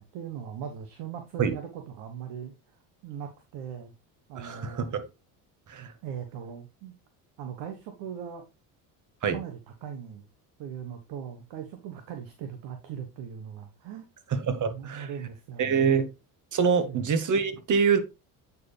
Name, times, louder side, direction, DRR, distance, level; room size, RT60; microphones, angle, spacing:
voice 1, 0.0-2.6 3.0-3.9 4.3-5.0 6.0-6.9 7.4-8.5 9.3-10.3 10.6-14.0 14.7-16.0 16.8-17.1, right 8 dB, 70° right, 1.3 m, -39 dB
voice 2, 4.3-5.0 5.7-5.9 9.2-9.4 14.3-15.1 15.6-16.0 16.5-18.0, right 6 dB, 45° right, 1.5 m, -25 dB
8.5 x 4.7 x 3.3 m
supercardioid pair, 90°, 43 cm